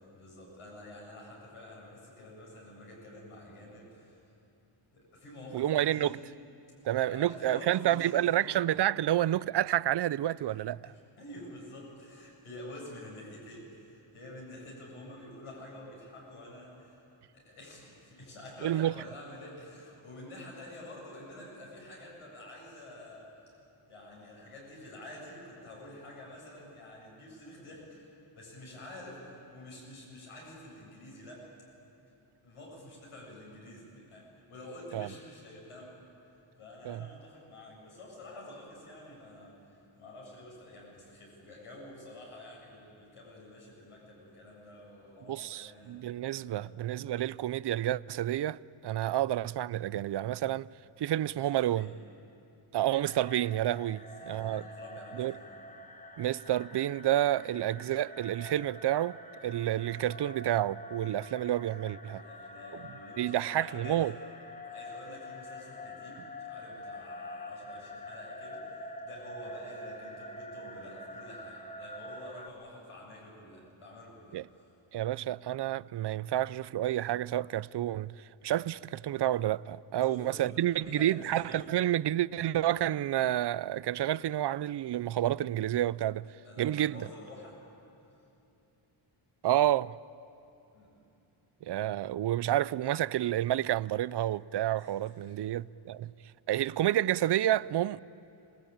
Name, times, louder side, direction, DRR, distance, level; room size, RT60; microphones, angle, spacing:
voice 1, 0.1-4.2 4.9-6.1 7.0-8.5 10.8-17.0 17.3-23.5 23.9-31.5 32.4-35.9 36.2-46.0 46.3-46.8 51.5-51.9 53.9-55.6 62.0-64.1 64.6-74.6 80.0-81.7 86.4-87.6 90.7-91.0 94.8-95.3, left 1 dB, 80° left, 8.0 m, -48 dB
voice 2, 5.5-6.2 6.8-10.8 18.6-18.9 34.9-35.1 36.8-37.1 45.3-48.6 48.8-50.7 51.0-51.9 52.7-54.6 55.2-55.3 56.2-59.2 59.4-62.2 63.2-64.1 74.3-74.4 74.9-78.2 78.4-86.3 86.6-87.1 89.4-89.9 91.6-96.1 96.5-98.0, right 12 dB, 55° right, 0.5 m, -29 dB
sound 1, 52.9-72.5, left 1 dB, 15° left, 1.2 m, -46 dB
26.5 x 19.5 x 8.8 m
wide cardioid pair, 110°, 50 cm